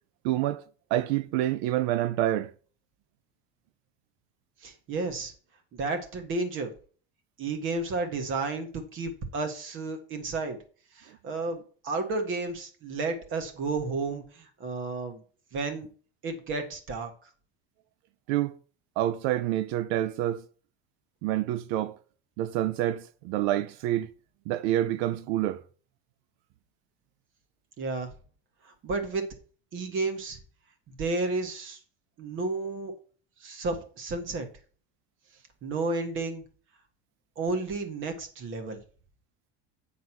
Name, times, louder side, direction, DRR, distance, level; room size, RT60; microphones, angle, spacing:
voice 1, 0.2-0.6 0.9-2.5 18.3-18.6 19.0-20.4 21.2-21.9 22.4-24.1 24.5-25.6, right 13 dB, 85° right, 0.6 m, -27 dB
voice 2, 4.6-5.3 5.7-6.7 7.4-10.6 10.9-15.2 15.5-15.9 16.2-17.1 27.8-28.1 28.6-29.2 29.7-30.4 31.0-31.8 32.2-32.9 33.4-34.5 35.6-36.4 37.4-38.8, right 3 dB, 40° right, 1.7 m, -32 dB
9.5 x 4.0 x 6.0 m
cardioid pair, 170°, 31 cm